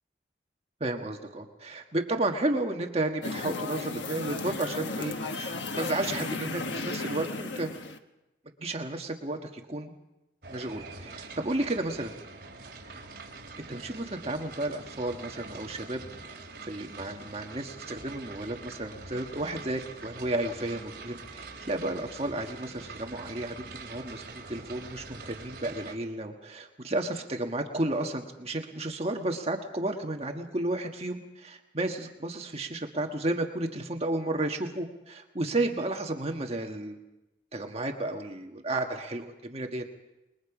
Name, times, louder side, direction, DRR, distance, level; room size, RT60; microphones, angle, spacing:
voice 1, 0.8-7.7 8.6-9.9 10.5-12.1 13.7-16.4 16.6-24.2 24.5-37.0 37.5-39.9, right 2 dB, 35° right, 3 dB, 1.5 m, -32 dB
sound 1, 3.2-8.0, left 3 dB, 80° left, 1.3 m, -35 dB
sound 2, 10.4-26.0, right 3 dB, 55° right, 3.8 m, -45 dB
28.0 x 21.5 x 5.0 m, 0.96 s
head